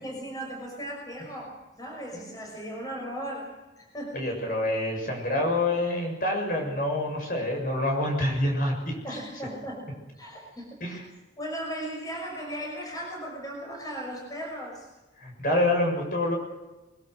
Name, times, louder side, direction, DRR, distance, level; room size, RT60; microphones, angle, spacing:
voice 1, 0.0-3.5 3.8-4.3 9.0-9.9 10.2-11.0 11.4-14.9, equal, 20° left, 0 dB, 5.8 m, -37 dB
voice 2, 4.1-9.0 10.8-11.0 15.2-16.4, left 1 dB, 45° left, 1 dB, 7.0 m, -27 dB
23.5 x 22.5 x 6.3 m, 1.1 s
head